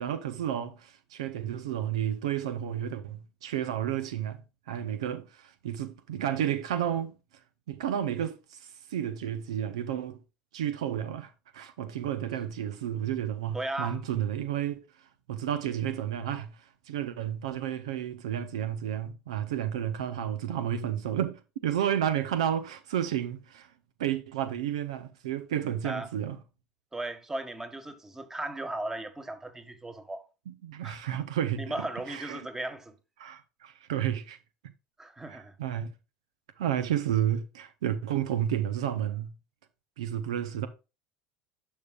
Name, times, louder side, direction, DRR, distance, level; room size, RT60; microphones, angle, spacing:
voice 1, 0.0-4.4 4.7-7.1 7.7-10.2 10.5-14.8 15.3-16.5 16.9-23.7 24.0-26.4 30.5-32.5 33.2-34.4 35.3-35.9 36.6-39.3 40.0-40.7, right 10 dB, 85° right, 0.6 m, -31 dB
voice 2, 13.5-14.0 25.8-26.1 26.9-30.2 30.8-31.0 31.6-32.9 35.0-35.5, right 2 dB, 15° right, 1.4 m, -36 dB
11.0 x 5.5 x 2.4 m
hypercardioid pair, 80°, 3 cm